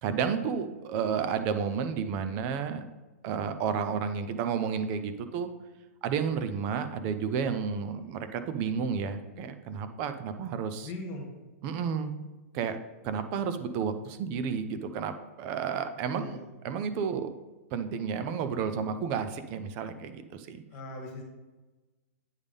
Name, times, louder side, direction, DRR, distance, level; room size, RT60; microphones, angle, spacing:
voice 1, 0.0-2.8 3.2-5.5 6.0-10.9 11.6-12.1 12.5-12.8 13.0-16.4 16.6-17.3 17.7-20.6, right 6 dB, 25° right, 10 dB, 0.4 m, -31 dB
voice 2, 10.8-11.3 16.1-16.5 20.7-21.2, left 2 dB, 25° left, 1 dB, 1.5 m, -40 dB
9.7 x 3.6 x 5.2 m, 1.2 s
hypercardioid pair, 175°, 8 cm